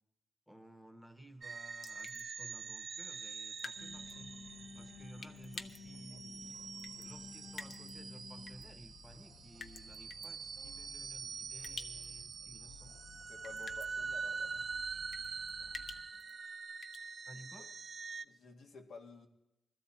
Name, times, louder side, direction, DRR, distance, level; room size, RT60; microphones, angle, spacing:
voice 1, 0.5-4.4 4.7-6.6 7.0-13.0 17.3-17.7, right 1 dB, 5° left, 8 dB, 1.1 m, -56 dB
sound 1, 1.4-18.2, right 5 dB, 45° right, 0.5 m, -45 dB
sound 2, 1.8-2.2 3.6-3.8 4.1-4.2 5.2-5.8 6.8-7.1 7.5-7.9 8.5-8.6 9.6-10.3 11.6-12.1 12.3-12.4 13.4-13.9 15.1-16.3 16.8-17.0, left 4 dB, 45° left, 0.8 m, -47 dB
sound 3, 3.7-16.0, left 4 dB, 70° left, 2.2 m, -54 dB
voice 2, 13.3-14.7 16.1-16.4 17.3-17.4 18.1-19.3, left 4 dB, 85° left, 3 dB, 2.0 m, -54 dB
22.0 x 14.5 x 4.3 m, 0.88 s
wide cardioid pair, 175°, 0 cm